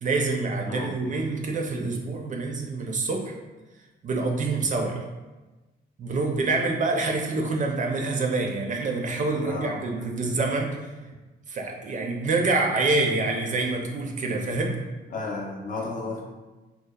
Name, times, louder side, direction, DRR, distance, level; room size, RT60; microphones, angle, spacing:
voice 1, 0.0-3.3 4.0-5.0 6.0-10.7 11.5-14.8, right 3 dB, 40° right, 1 dB, 0.4 m, -26 dB
voice 2, 9.4-9.9 10.2-10.3 15.1-16.2, left 3 dB, 40° left, -1 dB, 0.5 m, -33 dB
2.8 x 2.0 x 2.2 m, 1.2 s
cardioid pair, 90°, 20 cm